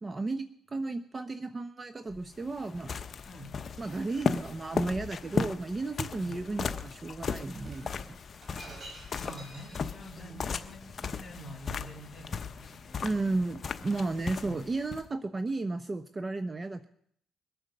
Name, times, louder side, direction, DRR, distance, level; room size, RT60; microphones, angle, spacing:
voice 1, 0.0-2.9 3.8-8.2 10.3-10.4 13.0-16.9, right 3 dB, 30° right, 10 dB, 0.8 m, -34 dB
sound 1, 2.1-15.1, left 5 dB, 45° left, 0.9 m, -36 dB
voice 2, 3.3-3.6 6.1-6.4 9.1-13.2 14.4-14.6, equal, 10° left, -5 dB, 3.5 m, -47 dB
Shatter, 5.0-5.6 6.3-6.6 7.5-10.1, right 2 dB, 45° right, 5.6 m, -49 dB
22.0 x 9.0 x 6.6 m, 0.66 s
cardioid pair, 90°, 0 cm